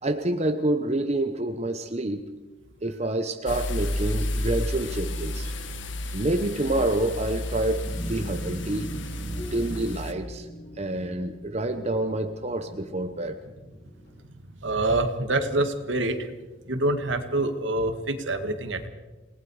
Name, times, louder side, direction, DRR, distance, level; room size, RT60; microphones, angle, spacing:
voice 1, 0.0-2.3 2.8-5.5 6.1-8.9 9.2-10.5 10.8-13.4, right 1 dB, 35° right, 6 dB, 1.0 m, -28 dB
sound 1, 3.5-10.1, left 1 dB, 75° left, 1.5 m, -31 dB
sound 2, 7.8-14.4, equal, 60° left, 4.4 m, -41 dB
voice 2, 14.4-16.3 16.7-18.9, right 2 dB, 75° right, 7 dB, 2.0 m, -26 dB
28.5 x 19.0 x 4.9 m, 1.2 s
head